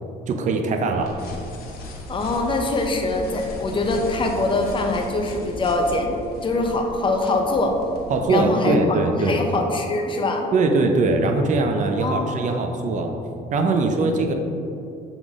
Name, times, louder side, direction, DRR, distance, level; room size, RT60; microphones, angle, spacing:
voice 1, 0.3-1.1 8.1-9.4 10.5-13.1 13.5-14.3, right 3 dB, 45° right, 4 dB, 0.7 m, -21 dB
sound 1, 1.0-8.3, left 1 dB, 65° left, 1.1 m, -37 dB
voice 2, 2.1-6.2 6.4-7.8 8.3-10.5 12.0-12.5, left 2 dB, 30° left, 3 dB, 0.8 m, -23 dB
6.9 x 4.0 x 3.6 m, 2.6 s
cardioid pair, 110°, 17 cm